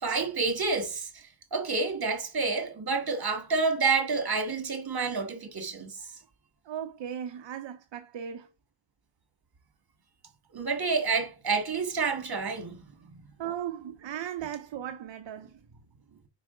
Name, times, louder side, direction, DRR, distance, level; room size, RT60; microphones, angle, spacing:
voice 1, 0.0-6.1 10.5-13.2, right 4 dB, 55° right, 1.6 m, -29 dB
voice 2, 6.6-8.5 13.4-15.6, right 9 dB, 75° right, 0.6 m, -37 dB
4.8 x 4.6 x 4.8 m
cardioid pair, 75°, 45 cm